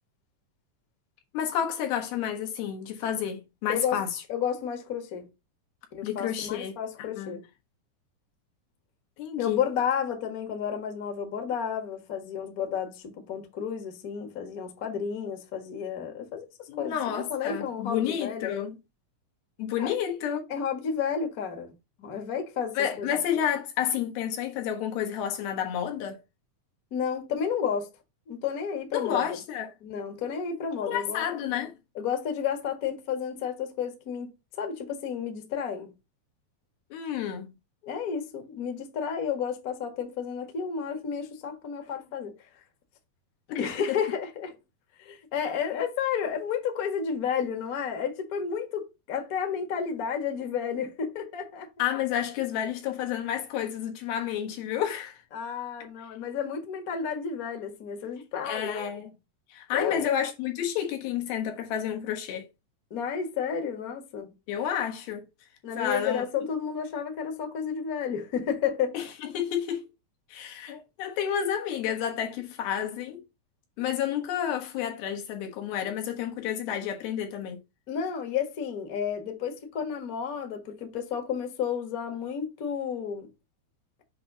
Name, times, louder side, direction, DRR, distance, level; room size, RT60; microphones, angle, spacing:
voice 1, 1.3-4.2 6.0-7.4 9.2-9.6 16.7-18.8 19.6-20.5 22.8-26.2 28.9-29.7 30.8-31.7 36.9-37.5 43.5-43.6 43.9-44.0 51.8-55.2 58.4-59.1 59.5-62.5 64.5-65.3 65.8-66.2 68.9-69.8 70.3-73.2 73.8-77.6, left 9 dB, 90° left, 3.3 m, -30 dB
voice 2, 4.3-5.2 5.9-7.4 9.4-18.5 19.8-19.9 20.5-21.7 22.0-23.2 26.9-27.9 28.3-29.4 29.8-31.2 31.9-35.9 37.8-42.3 43.5-44.5 45.0-51.7 55.3-58.9 59.7-60.1 62.9-64.3 65.6-69.0 77.9-83.3, left 7 dB, 55° left, 0.9 m, -31 dB
7.6 x 2.8 x 5.4 m
omnidirectional pair, 4.2 m